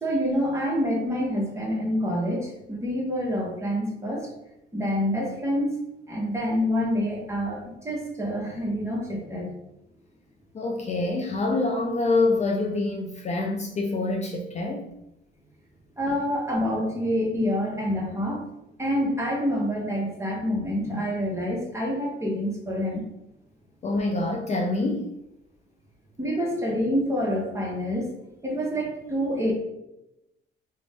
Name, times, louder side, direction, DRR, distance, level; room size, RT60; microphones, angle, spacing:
voice 1, 0.0-4.3 4.7-5.8 6.1-9.5 16.0-18.5 18.8-23.0 26.2-28.1 28.4-29.5, equal, 15° right, -2 dB, 0.9 m, -27 dB
voice 2, 10.5-14.9 23.8-25.1, left 2 dB, 35° left, 1 dB, 0.4 m, -26 dB
2.5 x 2.1 x 3.3 m, 0.87 s
cardioid pair, 90°, 20 cm